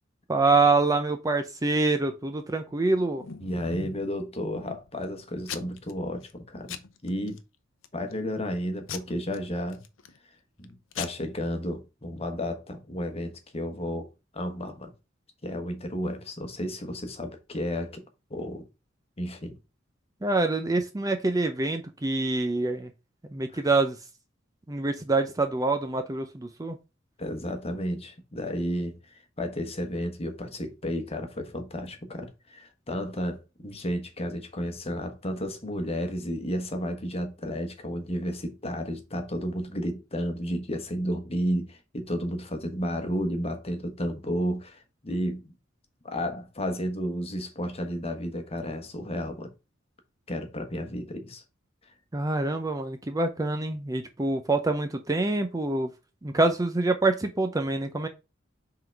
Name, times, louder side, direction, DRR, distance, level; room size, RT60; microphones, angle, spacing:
voice 1, 0.3-3.2 20.2-22.9 23.3-24.0 24.7-26.8 52.1-55.9 56.2-58.1, right 3 dB, 20° right, 0.5 m, -25 dB
Packing tape duct tape / Tearing, 2.7-4.1 4.5-5.0 5.5-5.9 6.2-6.4 6.7-7.4 7.8-8.2 8.9-10.2 10.6-10.7 10.9-11.1, left 7 dB, 85° left, 0.7 m, -39 dB
voice 2, 3.4-7.4 7.9-9.8 10.6-14.1 14.3-14.9 15.4-18.0 18.3-18.6 19.2-19.5 23.5-23.6 27.2-45.5 46.0-49.5 50.3-51.4 51.8-51.9, equal, 30° left, 1.2 m, -32 dB
5.6 x 3.8 x 4.5 m
head